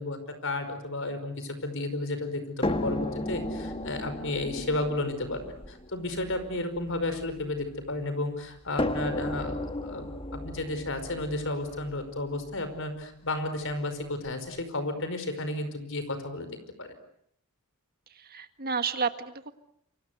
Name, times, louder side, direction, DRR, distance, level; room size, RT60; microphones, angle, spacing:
voice 1, 0.0-16.5 16.8-16.9, left 2 dB, 60° left, 10 dB, 5.2 m, -33 dB
sound 1, 2.6-7.8 8.8-12.7 13.7-13.8 14.2-14.3, left 1 dB, 25° left, 1.5 m, -35 dB
voice 2, 18.2-19.5, right 5 dB, 45° right, 9 dB, 1.7 m, -31 dB
28.5 x 24.5 x 8.2 m, 0.71 s
head